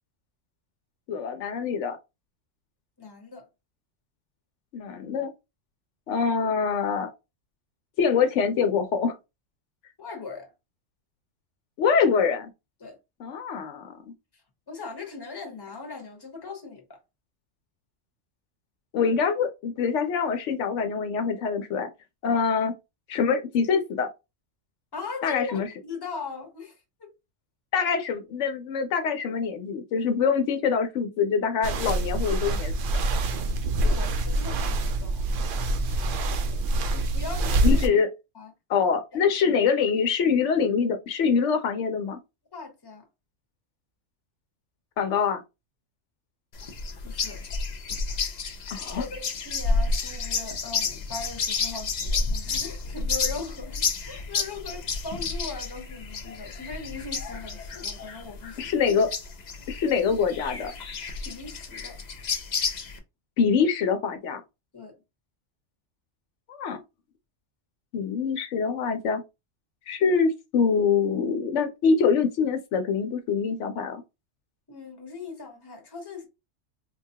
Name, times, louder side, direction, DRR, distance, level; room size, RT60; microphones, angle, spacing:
voice 1, 1.1-2.0 4.7-5.3 6.1-7.1 8.0-9.1 11.8-12.5 13.2-13.9 18.9-21.9 22.2-22.7 23.1-24.1 25.2-25.7 27.7-32.7 37.6-38.1 38.7-42.2 45.0-45.4 48.7-49.0 58.6-59.1 59.7-60.7 63.4-64.4 66.5-66.8 67.9-69.2 69.9-74.0, left 6 dB, 80° left, 0.9 m, -24 dB
voice 2, 3.0-3.5 10.0-10.5 12.8-13.0 14.7-17.0 24.9-27.1 33.8-35.2 36.3-37.8 38.3-38.5 39.1-39.2 42.5-43.0 47.0-47.4 48.8-58.7 61.2-62.0 64.7-65.0 74.7-76.3, left 4 dB, 20° left, 0.9 m, -39 dB
sound 1, 31.6-37.9, right 2 dB, 60° right, 0.6 m, -25 dB
sound 2, 46.5-63.0, left 4 dB, 45° left, 0.6 m, -31 dB
4.0 x 2.3 x 2.7 m
omnidirectional pair, 1.2 m